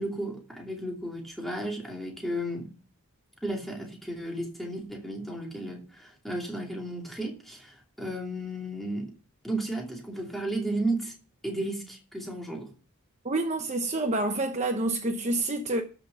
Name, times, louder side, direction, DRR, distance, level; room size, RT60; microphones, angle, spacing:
voice 1, 0.0-2.7 3.4-9.1 9.4-11.1 11.4-12.7, right 1 dB, ahead, 2.7 m, -33 dB
voice 2, 13.2-15.8, right 2 dB, 30° right, 0.9 m, -28 dB
12.5 x 6.4 x 6.8 m
head